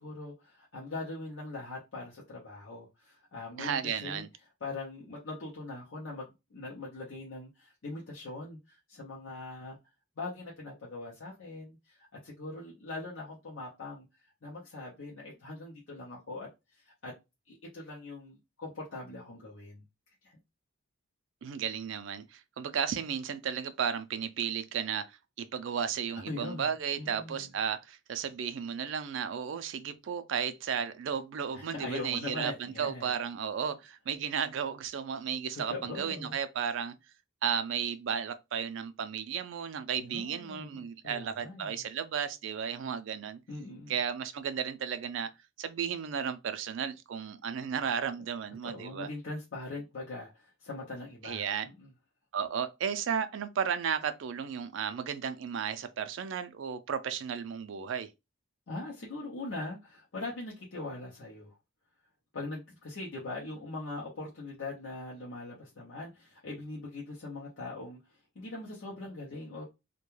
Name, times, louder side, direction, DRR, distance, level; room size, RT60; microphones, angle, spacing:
voice 1, 0.0-4.2 4.6-9.8 10.2-14.1 14.4-17.1 17.5-19.8 20.2-20.3 26.1-26.7 27.0-27.5 31.5-33.1 35.5-36.3 40.0-41.9 43.5-43.9 48.6-51.9 58.7-61.6 62.3-68.0 68.3-69.6, left 2 dB, 75° left, 0.7 m, -41 dB
voice 2, 3.6-4.3 21.4-36.9 37.4-43.4 43.9-45.3 45.6-49.1 51.2-51.7 52.3-58.1, right 7 dB, 65° right, 0.3 m, -34 dB
2.2 x 2.2 x 3.0 m
head